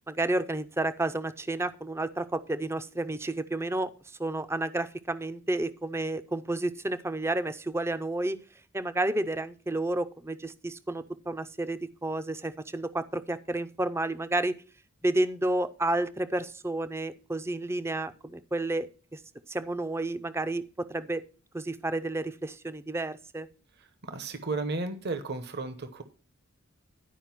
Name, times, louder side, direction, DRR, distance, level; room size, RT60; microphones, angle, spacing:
voice 1, 0.1-8.4 8.7-14.6 15.0-19.2 19.5-21.2 21.5-23.5, right 2 dB, 10° right, 12 dB, 0.5 m, -31 dB
voice 2, 23.8-26.0, right 3 dB, 50° right, 9 dB, 1.0 m, -34 dB
11.0 x 4.9 x 5.9 m, 0.36 s
head